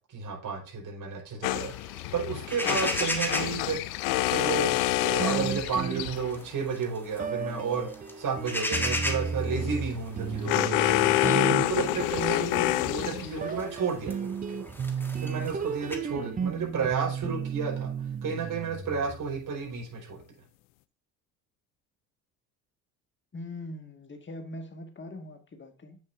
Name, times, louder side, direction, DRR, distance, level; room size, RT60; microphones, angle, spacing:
voice 1, 0.1-3.8 4.3-10.9 11.3-14.7 15.2-17.9 18.2-20.2, right 5 dB, 50° right, -1 dB, 4.4 m, -32 dB
sound 1, 1.4-6.4 9.4-13.6, left 17 dB, 75° left, 0.6 m, -28 dB
sound 2, 1.4-16.0, left 1 dB, 5° left, 1.6 m, -37 dB
sound 3, 5.2-6.7 7.2-19.4, right 6 dB, 20° right, 0.5 m, -34 dB
voice 2, 23.3-26.0, left 1 dB, 25° left, 6 dB, 1.8 m, -41 dB
8.2 x 6.9 x 2.6 m, 0.38 s
hypercardioid pair, 65°, 42 cm